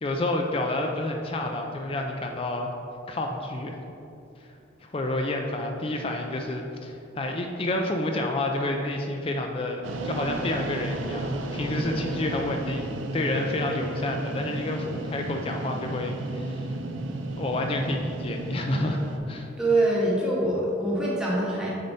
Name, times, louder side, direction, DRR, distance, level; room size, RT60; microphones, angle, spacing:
voice 1, 0.0-2.7 3.1-3.8 4.8-12.9 13.1-16.7 17.4-19.0 19.3-19.5, left 2 dB, 30° left, 3 dB, 0.4 m, -29 dB
sound 1, 9.8-19.2, right 2 dB, 80° right, 0.5 m, -33 dB
voice 2, 19.6-21.8, right 1 dB, 5° right, -6 dB, 1.1 m, -24 dB
6.5 x 4.1 x 4.3 m, 2.7 s
head